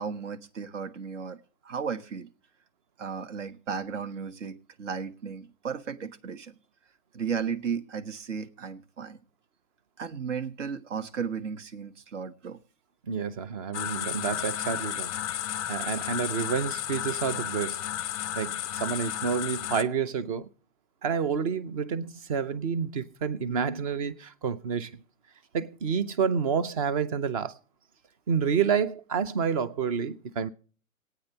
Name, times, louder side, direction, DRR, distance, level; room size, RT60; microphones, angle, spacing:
voice 1, 0.0-2.3 3.0-6.6 7.1-9.2 10.0-12.6, right 6 dB, 60° right, 1.3 m, -35 dB
voice 2, 13.1-15.1 15.7-17.8 18.4-20.5 21.0-25.0 25.5-27.6 28.3-30.5, right 6 dB, 25° right, 0.6 m, -29 dB
sound 1, 13.7-19.8, left 11 dB, 30° left, 0.6 m, -33 dB
27.0 x 9.1 x 2.8 m
hypercardioid pair, 140°, 41 cm